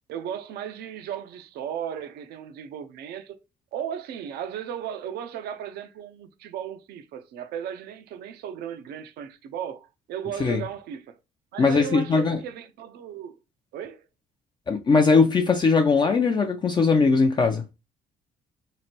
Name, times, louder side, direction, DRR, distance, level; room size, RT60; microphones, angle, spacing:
voice 1, 0.1-3.3 3.7-11.2 11.5-13.4 13.7-14.0, right 9 dB, 70° right, 0.6 m, -36 dB
voice 2, 11.6-12.4 14.7-17.6, left 4 dB, 25° left, 0.4 m, -20 dB
3.1 x 2.5 x 4.3 m
cardioid pair, 110°, 17 cm